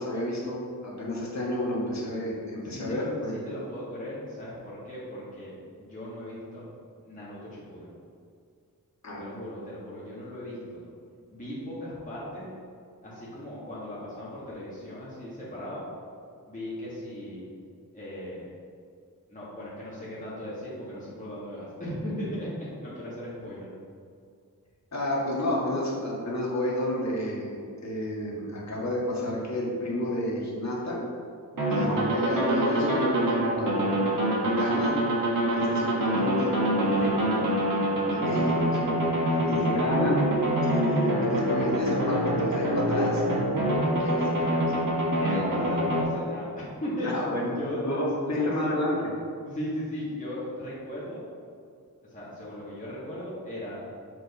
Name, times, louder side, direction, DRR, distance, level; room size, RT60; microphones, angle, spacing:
voice 1, 0.0-3.3 9.0-9.2 24.9-27.6 27.8-31.0 31.7-33.9 34.4-35.0 35.5-37.5 38.1-39.0 39.4-40.2 40.6-43.2 43.7-44.7 47.0-47.5 47.8-49.0, left 1 dB, 50° left, -5 dB, 1.8 m, -30 dB
voice 2, 2.6-6.7 7.0-7.9 9.2-10.8 11.3-12.5 13.0-15.8 16.5-17.4 17.9-18.4 19.3-23.7 33.5-34.7 36.7-37.5 39.4-39.8 45.2-47.1 47.5-48.0 48.3-48.7 49.4-51.2 52.0-53.8, equal, 20° left, -10 dB, 1.8 m, -37 dB
sound 1, 31.5-46.0, right 1 dB, 65° right, 1.6 m, -25 dB
7.4 x 4.8 x 4.2 m, 2.3 s
wide cardioid pair, 140°, 36 cm